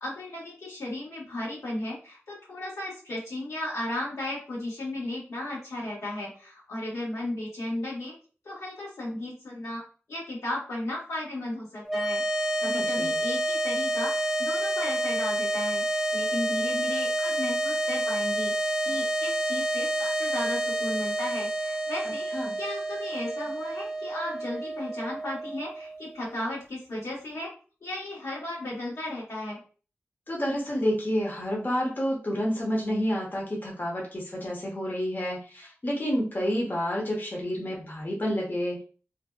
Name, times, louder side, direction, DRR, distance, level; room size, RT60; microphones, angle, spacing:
voice 1, 0.0-8.1 8.4-9.8 10.1-22.3 22.6-27.5 27.8-29.6, left 1 dB, 85° left, -6 dB, 1.2 m, -35 dB
sound 1, 11.9-26.3, right 1 dB, 5° right, 0.4 m, -29 dB
voice 2, 12.6-13.2 22.3-22.5 30.3-38.8, equal, 40° left, -3 dB, 0.8 m, -29 dB
2.6 x 2.1 x 2.2 m, 0.38 s
cardioid pair, 55°, 5 cm